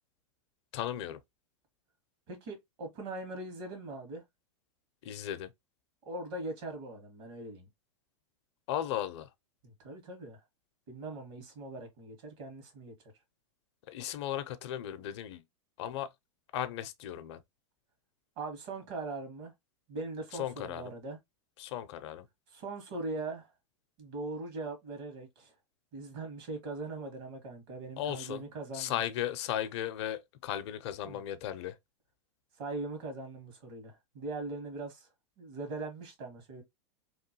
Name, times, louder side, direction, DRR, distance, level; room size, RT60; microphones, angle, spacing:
voice 1, 0.7-1.2 5.0-5.5 8.7-9.3 13.9-15.4 15.8-16.1 16.5-17.4 20.4-20.9 21.6-22.3 28.0-28.4 28.7-31.8, left 11 dB, 60° left, 0.5 m, -36 dB
voice 2, 2.3-4.2 6.0-7.7 9.6-10.4 10.9-12.9 18.4-19.5 19.9-21.2 22.5-23.5 24.0-25.5 25.9-29.0 31.0-31.2 32.6-35.1 35.4-36.6, right 2 dB, 55° right, 1.6 m, -41 dB
3.0 x 2.2 x 2.8 m
hypercardioid pair, 110°, 16 cm